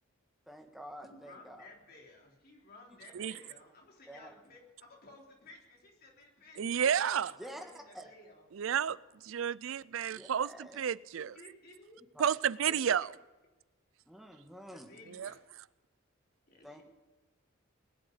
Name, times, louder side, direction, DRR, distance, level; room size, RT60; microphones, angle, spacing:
voice 1, 0.5-1.6 4.1-4.3 7.4-8.1 10.1-10.8 12.2-12.3 12.6-12.8 14.1-14.9 16.6-16.8, equal, ahead, 1.7 m, -48 dB
voice 2, 1.0-6.8 7.1-8.5 11.2-12.0 14.7-15.5 16.5-16.8, left 2 dB, 45° left, 3.4 m, -56 dB
voice 3, 6.6-7.3 8.6-9.0 9.2-11.3 12.2-13.1 15.1-15.3, right 8 dB, 75° right, 0.4 m, -31 dB
21.0 x 7.8 x 8.3 m
head